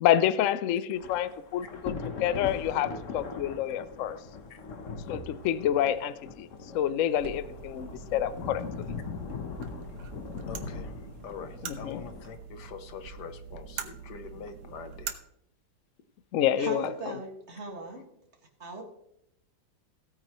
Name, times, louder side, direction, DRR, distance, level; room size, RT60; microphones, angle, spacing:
voice 1, 0.0-4.2 5.1-6.5 6.7-8.9 11.6-12.0 16.3-17.1, left 11 dB, 85° left, 15 dB, 0.7 m, -28 dB
Thunder / Rain, 0.9-12.3, left 4 dB, 50° left, 1.1 m, -40 dB
sound 1, 7.1-15.1, right 7 dB, 65° right, 1.3 m, -44 dB
voice 2, 10.5-10.9 11.2-15.2, left 6 dB, 65° left, 10 dB, 1.4 m, -44 dB
voice 3, 16.6-18.0 18.6-18.8, right 2 dB, 35° right, 1 dB, 2.1 m, -38 dB
16.0 x 9.0 x 3.0 m, 0.76 s
omnidirectional pair, 2.1 m